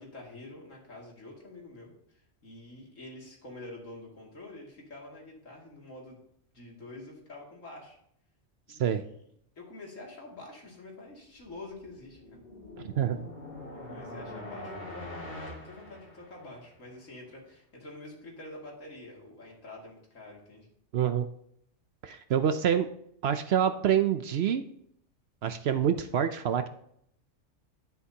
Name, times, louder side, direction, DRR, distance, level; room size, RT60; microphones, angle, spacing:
voice 1, 0.0-6.2 6.5-8.0 8.7-9.1 9.6-12.4 13.7-20.7, left 2 dB, 80° left, -2 dB, 2.9 m, -47 dB
voice 2, 8.7-9.0 12.8-13.2 20.9-21.3 22.0-22.9 23.2-24.6 25.4-26.7, right 9 dB, 65° right, 9 dB, 0.7 m, -26 dB
sound 1, 11.5-16.7, left 1 dB, 35° left, 2.5 m, -43 dB
10.5 x 9.6 x 2.8 m, 0.71 s
omnidirectional pair, 1.3 m